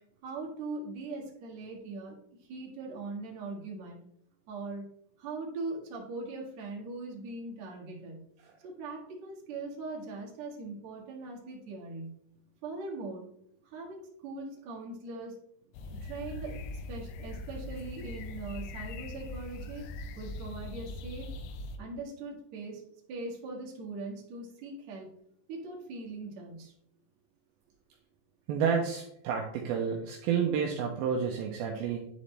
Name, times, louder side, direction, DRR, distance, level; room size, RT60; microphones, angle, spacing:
voice 1, 0.2-4.0 4.5-4.8 5.2-8.2 8.6-12.2 12.6-13.3 13.6-15.3 15.9-19.9 20.2-21.3 21.8-22.8 23.1-25.1 25.5-26.7, right 3 dB, 55° right, -2 dB, 2.4 m, -41 dB
sound 1, 15.7-21.8, left 2 dB, 90° left, 2.8 m, -41 dB
voice 2, 28.5-32.0, right 7 dB, 80° right, 1 dB, 2.4 m, -30 dB
9.9 x 4.1 x 3.2 m, 0.73 s
omnidirectional pair, 4.5 m